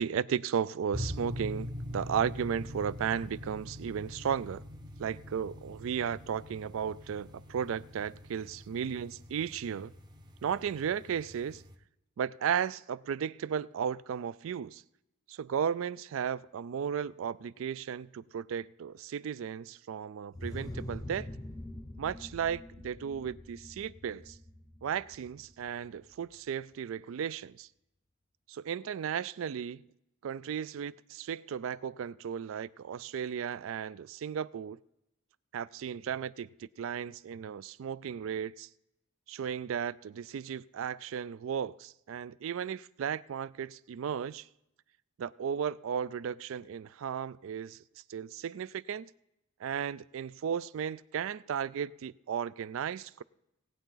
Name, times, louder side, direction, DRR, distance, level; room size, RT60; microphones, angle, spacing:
voice 1, 0.0-4.6 5.0-9.9 10.4-11.6 12.2-14.8 15.3-21.3 22.0-24.4 24.8-27.7 28.5-29.8 30.2-34.8 35.5-38.7 39.3-44.4 45.2-47.8 48.1-49.1 49.6-53.2, right 8 dB, 65° right, 0.3 m, -35 dB
sound 1, 0.9-11.7, left 1 dB, 20° right, 0.8 m, -43 dB
sound 2, 20.3-25.9, left 1 dB, 15° left, 0.6 m, -44 dB
18.5 x 8.9 x 3.9 m
head